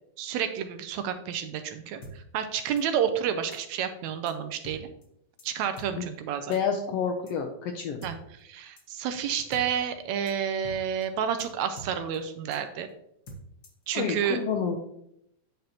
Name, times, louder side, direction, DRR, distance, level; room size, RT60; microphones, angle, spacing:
voice 1, 0.2-4.9 5.4-6.5 8.0-12.9 13.9-14.4, right 8 dB, 80° right, 9 dB, 1.8 m, -30 dB
sound 1, 2.0-2.1 2.8-2.9 3.5-3.6 4.3-4.4 4.6-4.8 5.0-5.1 5.4-5.5 5.8-5.9 6.5-6.6 7.3-7.4 8.0-8.1 8.8-8.9 9.1-9.2 9.5-9.6 9.9-10.0 10.3-10.4 10.6-10.8 11.0-11.1 11.4-11.5 11.8-12.2 12.5-12.6 13.3-13.8, right 1 dB, 55° left, 1.1 m, -44 dB
voice 2, 6.5-8.0 13.9-14.8, left 6 dB, 80° left, 3 dB, 1.4 m, -29 dB
9.0 x 5.2 x 2.8 m, 0.75 s
omnidirectional pair, 3.4 m